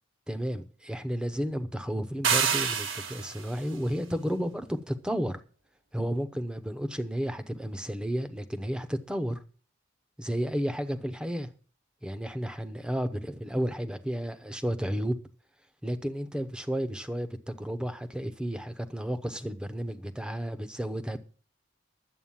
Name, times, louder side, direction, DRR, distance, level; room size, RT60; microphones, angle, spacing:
voice 1, 0.3-5.4 5.9-9.4 10.2-11.5 12.0-15.2 15.8-21.2, equal, 5° right, 0.8 m, -32 dB
sound 1, 2.2-3.5, right 6 dB, 70° right, 1.5 m, -27 dB
11.0 x 8.1 x 7.3 m
head